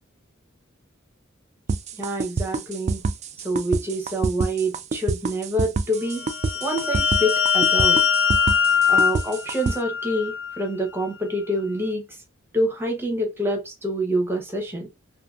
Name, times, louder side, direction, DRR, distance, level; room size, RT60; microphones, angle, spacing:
sound 1, 1.7-9.8, right 4 dB, 35° right, 0.3 m, -26 dB
voice 1, 2.0-3.0 3.4-6.3 6.6-8.0 8.9-12.0 12.5-14.9, right 1 dB, 10° right, 0.8 m, -26 dB
sound 2, 6.1-10.6, left 7 dB, 65° left, 0.8 m, -22 dB
2.6 x 2.6 x 2.3 m
head